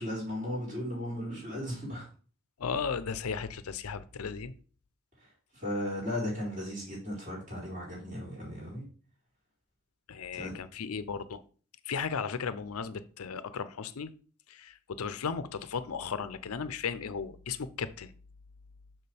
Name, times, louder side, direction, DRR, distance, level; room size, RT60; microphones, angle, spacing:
voice 1, 0.0-2.1 5.5-8.8 10.3-10.6, left 1 dB, 35° right, -5 dB, 4.2 m, -36 dB
voice 2, 2.6-4.5 10.1-11.4 11.8-14.1 14.5-18.1, left 6 dB, 85° left, 13 dB, 0.6 m, -35 dB
6.8 x 6.1 x 3.4 m, 0.40 s
head